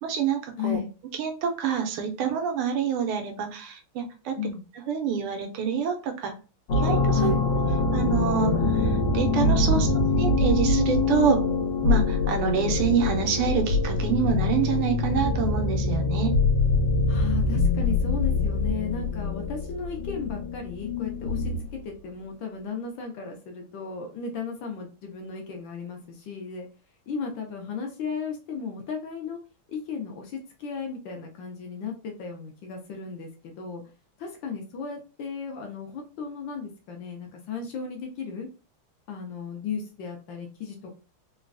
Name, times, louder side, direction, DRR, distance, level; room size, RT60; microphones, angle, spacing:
voice 1, 0.0-0.8 1.2-4.4 4.9-6.3 6.7-7.3 7.9-9.9 10.1-11.4 11.8-16.4, right 7 dB, 85° right, 4 dB, 1.5 m, -27 dB
voice 2, 0.6-0.9 4.4-4.6 7.1-7.4 9.7-10.2 17.1-26.7 27.1-29.4 29.7-33.8 34.2-38.5 39.1-41.0, left 6 dB, 70° left, 2 dB, 1.2 m, -35 dB
sound 1, 6.7-21.7, left 3 dB, 90° left, 1.7 m, -24 dB
3.9 x 2.2 x 2.4 m, 0.34 s
omnidirectional pair, 2.4 m